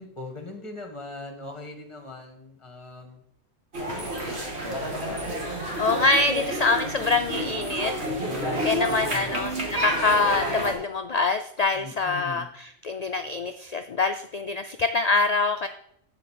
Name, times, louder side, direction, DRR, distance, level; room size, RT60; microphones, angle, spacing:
voice 1, 0.0-3.2 3.7-4.8 8.3-9.3 11.7-12.5, left 3 dB, 25° left, 4 dB, 1.4 m, -41 dB
sound 1, 3.7-10.7, equal, 55° right, 2.5 m, -30 dB
voice 2, 5.8-7.9 8.6-15.7, left 3 dB, 65° left, 8 dB, 0.4 m, -25 dB
7.7 x 4.9 x 7.3 m, 0.71 s
omnidirectional pair, 1.3 m